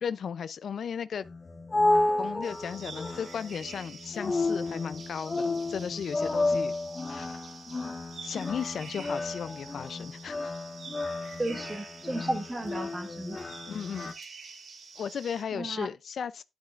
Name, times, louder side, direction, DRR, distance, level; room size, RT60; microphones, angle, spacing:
voice 1, 0.0-1.2 2.2-6.7 7.1-7.4 8.2-10.5 13.7-14.1 15.0-16.4, left 7 dB, 75° left, 0.5 m, -35 dB
sound 1, 1.3-14.1, left 2 dB, 35° left, 1.6 m, -31 dB
sound 2, 2.4-15.4, right 4 dB, 75° right, 3.5 m, -47 dB
voice 2, 11.4-13.4 15.5-15.9, right 1 dB, 20° right, 1.7 m, -33 dB
11.0 x 8.9 x 2.5 m
wide cardioid pair, 105°, 0 cm